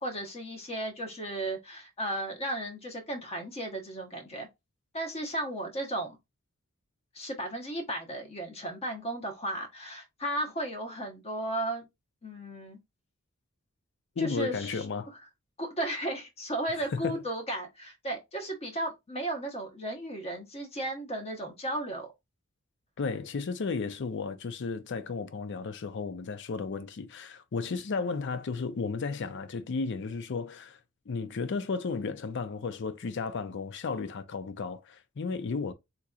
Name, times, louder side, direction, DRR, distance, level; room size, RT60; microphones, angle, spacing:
voice 1, 0.0-4.5 4.9-6.2 7.1-11.9 12.2-12.8 14.2-14.8 15.6-22.1, right 1 dB, 30° left, 0.9 m, -35 dB
voice 2, 14.2-15.1 16.7-17.2 23.0-30.8 31.1-35.7, left 4 dB, 55° left, 0.5 m, -34 dB
3.8 x 2.9 x 2.3 m
head